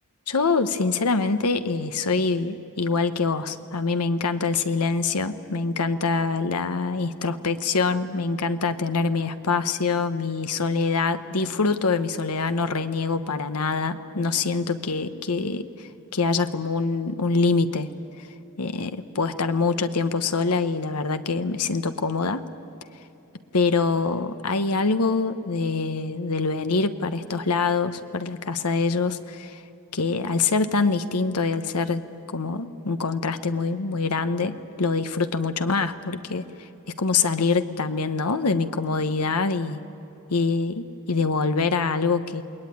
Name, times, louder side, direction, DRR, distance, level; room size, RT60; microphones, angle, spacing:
voice 1, 0.3-17.9 18.2-18.3 18.6-22.4 23.5-29.6 29.9-39.8 40.3-42.4, left 4 dB, 85° left, 10 dB, 1.0 m, -25 dB
28.5 x 20.5 x 9.5 m, 2.7 s
head